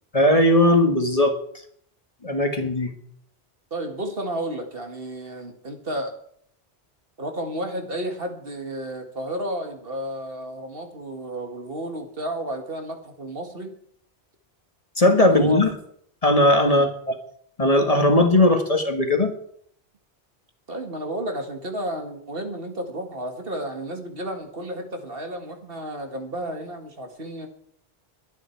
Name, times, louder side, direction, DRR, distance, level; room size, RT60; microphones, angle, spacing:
voice 1, 0.1-1.3 2.2-2.9 15.0-15.7 16.2-17.2 17.6-19.3, left 1 dB, 35° left, 5 dB, 1.6 m, -18 dB
voice 2, 3.7-6.1 7.2-13.7 15.2-15.6 16.6-16.9 20.7-27.5, right 1 dB, 60° right, 4 dB, 2.1 m, -32 dB
22.0 x 9.8 x 4.6 m, 0.66 s
omnidirectional pair, 1.1 m